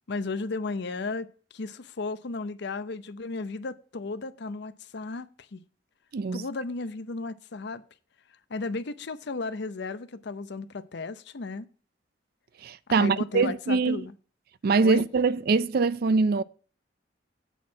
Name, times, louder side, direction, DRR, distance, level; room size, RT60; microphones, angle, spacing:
voice 1, 0.1-1.3 1.5-5.6 6.3-7.8 8.5-11.7 13.0-14.1 14.8-15.0, left 3 dB, 65° left, 0.6 m, -34 dB
voice 2, 6.1-6.4 12.6-14.0 14.6-16.4, right 4 dB, 55° right, 0.4 m, -23 dB
8.2 x 4.4 x 7.2 m
head